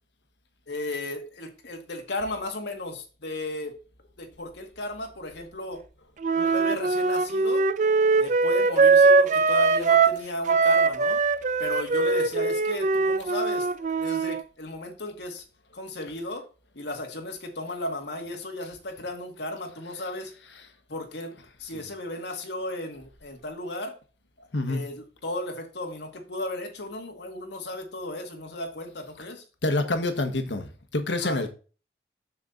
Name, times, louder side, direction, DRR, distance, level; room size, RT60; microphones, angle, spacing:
voice 1, 0.7-3.8 4.2-5.8 6.3-7.7 8.2-11.2 11.6-15.4 15.7-16.5 16.7-20.3 20.9-24.0 24.4-29.4 31.2-31.4, left 1 dB, 75° left, 2.0 m, -35 dB
Wind instrument woodwind instrument, 6.2-10.2 10.5-14.4, right 4 dB, 45° right, 0.5 m, -21 dB
voice 2, 29.6-31.5, left 2 dB, 90° left, 1.4 m, -27 dB
7.1 x 6.9 x 4.0 m
head